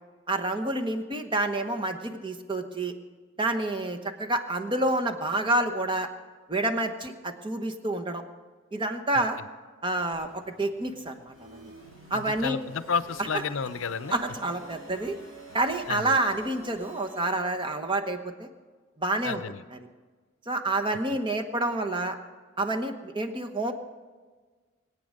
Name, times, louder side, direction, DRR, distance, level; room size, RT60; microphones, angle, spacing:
voice 1, 0.3-2.9 3.4-6.1 6.5-8.2 8.7-9.4 9.8-11.7 12.1-12.6 14.1-15.2 15.5-18.5 19.0-19.4 20.5-22.1 22.6-23.7, right 2 dB, 25° right, 5 dB, 1.1 m, -28 dB
voice 2, 9.1-9.5 12.1-14.2 15.9-16.1 19.2-19.6, left 6 dB, 65° left, 14 dB, 0.6 m, -32 dB
sound 1, 10.1-17.4, right 1 dB, 75° right, 6.1 m, -49 dB
22.5 x 8.7 x 6.5 m, 1.4 s
head